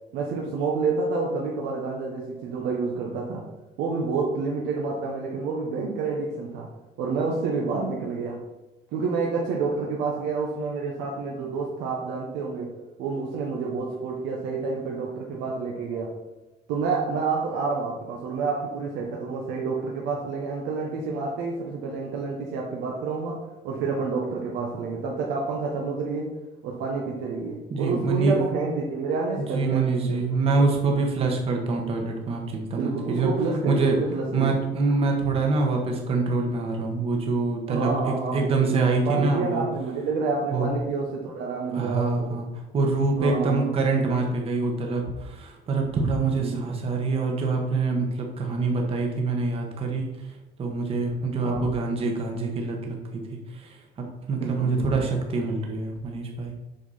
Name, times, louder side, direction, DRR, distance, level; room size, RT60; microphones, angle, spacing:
voice 1, 0.1-3.5 3.8-6.7 7.0-8.4 8.9-16.2 16.7-26.3 26.6-30.2 30.6-30.7 32.8-34.6 37.7-42.3 43.2-43.7 46.4-46.7 51.4-51.7 54.4-54.9, right 4 dB, 85° right, -1 dB, 1.4 m, -29 dB
voice 2, 27.7-28.3 29.5-33.3 33.7-34.0 34.3-39.6 40.5-40.7 41.7-42.5 42.7-50.1 50.6-53.0 53.5-56.5, right 3 dB, 35° right, 1 dB, 1.3 m, -25 dB
8.1 x 6.1 x 4.2 m, 1.0 s
cardioid pair, 170°, 18 cm